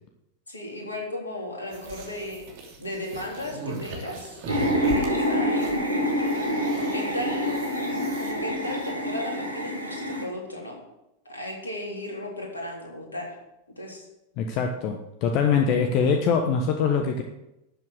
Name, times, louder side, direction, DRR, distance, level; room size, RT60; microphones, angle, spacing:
voice 1, 0.5-2.4 2.8-4.4 4.8-5.7 6.9-10.8 11.3-13.3 13.8-14.1, left 1 dB, 75° left, -1 dB, 3.7 m, -35 dB
sound 1, 1.7-8.9, right 3 dB, 50° right, 2.8 m, -39 dB
sound 2, 4.5-10.2, equal, 85° right, 2.1 m, -26 dB
voice 2, 14.4-17.2, left 6 dB, 40° left, 4 dB, 1.1 m, -23 dB
12.0 x 7.7 x 6.6 m, 0.89 s
figure-of-eight pair, 90°, 0 cm